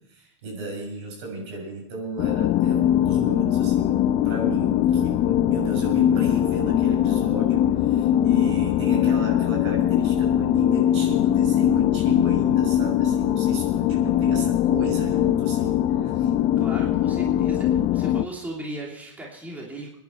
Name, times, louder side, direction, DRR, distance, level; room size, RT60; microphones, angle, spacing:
voice 1, 0.1-16.3, right 3 dB, 70° right, 1 dB, 6.8 m, -35 dB
sound 1, 2.2-18.2, left 11 dB, 40° left, 0.7 m, -21 dB
voice 2, 16.6-19.9, right 1 dB, 10° right, -2 dB, 3.1 m, -37 dB
23.0 x 10.5 x 4.6 m, 0.77 s
supercardioid pair, 125°, 16 cm